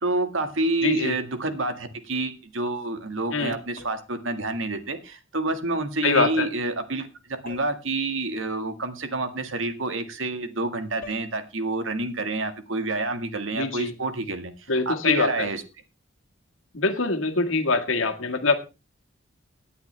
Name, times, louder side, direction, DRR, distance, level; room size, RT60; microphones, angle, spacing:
voice 1, 0.0-7.1 7.4-14.5 14.9-15.6, right 2 dB, 70° right, 8 dB, 1.7 m, -28 dB
voice 2, 0.8-1.1 3.3-3.6 6.0-6.5 13.6-13.9 14.7-15.5 16.7-18.5, left 3 dB, 75° left, 4 dB, 1.8 m, -24 dB
sound 1, 3.8-4.2 7.5-7.9 11.0-11.4, left 4 dB, 40° left, 2.4 m, -45 dB
18.0 x 9.6 x 3.3 m, 0.29 s
head